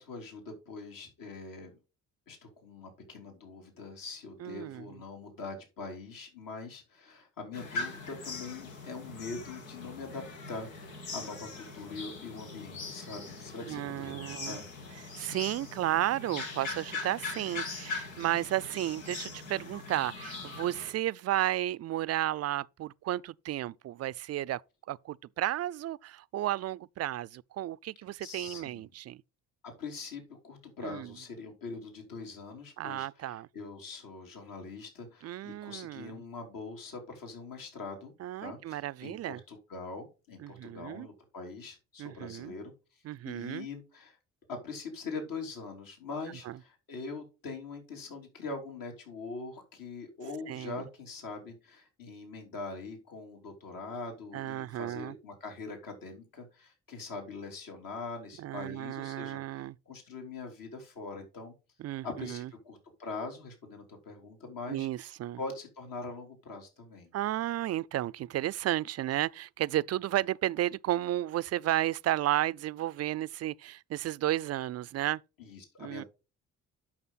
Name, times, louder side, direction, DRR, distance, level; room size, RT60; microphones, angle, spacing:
voice 1, 0.0-1.8 2.3-14.7 28.2-28.9 29.6-38.1 38.4-44.2 44.5-61.5 62.0-65.1 65.4-67.1 75.4-76.1, left 3 dB, 60° left, 3.2 m, -43 dB
voice 2, 4.4-4.9 13.7-14.6 15.1-24.6 24.9-29.2 30.8-31.1 32.8-33.5 35.2-36.1 38.2-39.4 40.4-41.1 42.0-42.5 43.0-43.7 46.5-46.6 50.5-50.9 54.3-55.1 58.4-59.8 61.8-62.5 64.7-65.4 67.1-75.2 75.8-76.0, right 14 dB, 40° right, 0.4 m, -33 dB
sound 1, 7.5-20.9, left 3 dB, 90° left, 1.6 m, -41 dB
8.6 x 6.7 x 4.0 m
hypercardioid pair, 45°, 38 cm